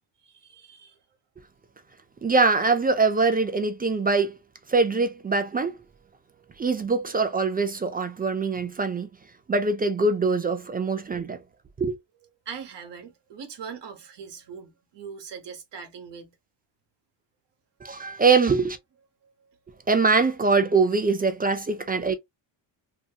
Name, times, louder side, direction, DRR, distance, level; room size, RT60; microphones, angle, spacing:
voice 1, 0.2-1.0 6.3-6.5 12.5-16.3 19.2-19.3, right 6 dB, 60° right, 1.0 m, -41 dB
voice 2, 2.2-4.4 4.7-5.8 6.6-9.1 9.5-11.4 11.8-11.9 17.8-18.8 19.9-22.1, right 4 dB, 20° right, 0.3 m, -23 dB
2.8 x 2.6 x 2.3 m
cardioid pair, 100°, 48 cm